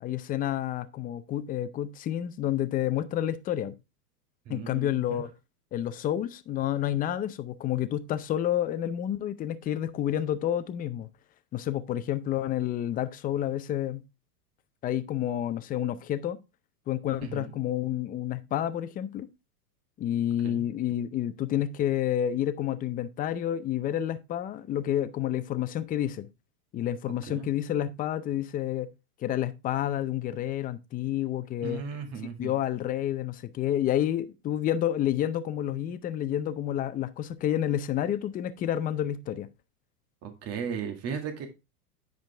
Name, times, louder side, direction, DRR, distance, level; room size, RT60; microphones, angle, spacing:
voice 1, 0.0-3.7 4.5-5.3 5.7-11.1 11.5-14.0 14.8-16.4 16.9-19.3 20.0-26.3 26.7-28.9 29.2-31.8 32.4-39.5, left 11 dB, 20° left, 0.5 m, -29 dB
voice 2, 4.5-5.2 17.2-17.5 20.4-20.6 27.3-27.5 31.6-32.5 40.2-41.5, right 6 dB, 30° right, 2.0 m, -36 dB
9.2 x 5.2 x 3.4 m
supercardioid pair, 130°, 46 cm